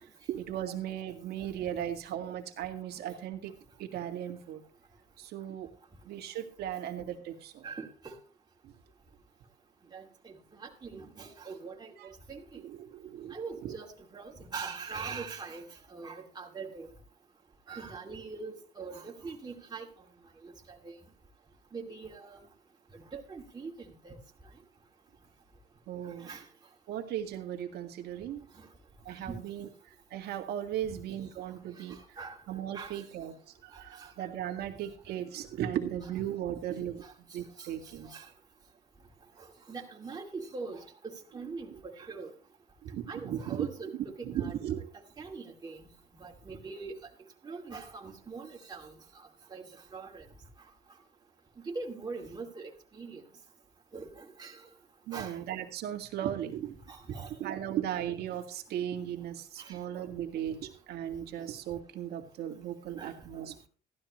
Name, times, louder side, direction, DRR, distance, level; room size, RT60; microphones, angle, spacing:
voice 1, 0.3-4.6 5.2-5.7 6.1-7.7 8.6-8.7 12.0-12.1 12.5-13.8 25.9-26.3 26.9-28.5 29.0-29.7 30.1-32.2 32.5-38.1 41.7-41.8 42.8-43.7 44.2-44.9 55.1-56.8 57.1-63.7, right 10 dB, 70° right, 1.9 m, -37 dB
voice 2, 7.6-8.2 9.9-12.6 13.3-15.6 15.9-16.9 17.7-19.9 20.4-20.5 20.8-21.0 21.7-22.4 22.9-24.2 26.2-26.4 28.6-28.7 29.3-29.4 31.8-32.4 32.7-33.0 34.0-34.1 37.0-37.1 37.6-37.7 38.0-38.3 39.7-42.3 43.1-44.5 45.2-45.9 46.2-47.0 47.4-48.9 49.5-50.3 51.6-53.2 53.9-54.6 55.1-55.3 56.9-57.3 59.6-59.8 63.0-63.2, right 4 dB, 25° right, 2.5 m, -42 dB
15.0 x 12.0 x 3.1 m
cardioid pair, 110°, 17 cm